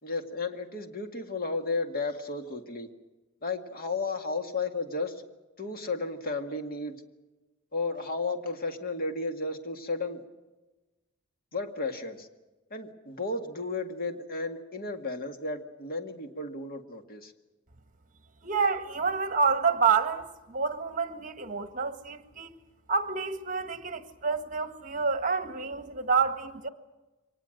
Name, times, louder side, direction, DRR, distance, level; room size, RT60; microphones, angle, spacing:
voice 1, 0.0-2.9 3.4-5.3 5.6-6.9 7.7-10.2 11.5-12.3 12.7-17.3, left 3 dB, 45° left, 2.0 m, -33 dB
voice 2, 18.4-22.6 22.9-26.7, right 5 dB, 40° right, 1.6 m, -28 dB
24.0 x 19.5 x 7.8 m
head